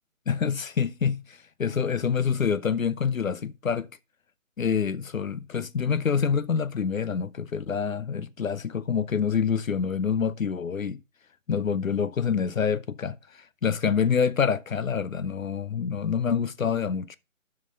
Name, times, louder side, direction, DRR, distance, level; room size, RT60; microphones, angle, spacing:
voice 1, 0.3-3.9 4.6-11.0 11.5-17.2, left 6 dB, 75° left, 0.7 m, -26 dB
7.9 x 5.9 x 6.5 m
figure-of-eight pair, 155°, 41 cm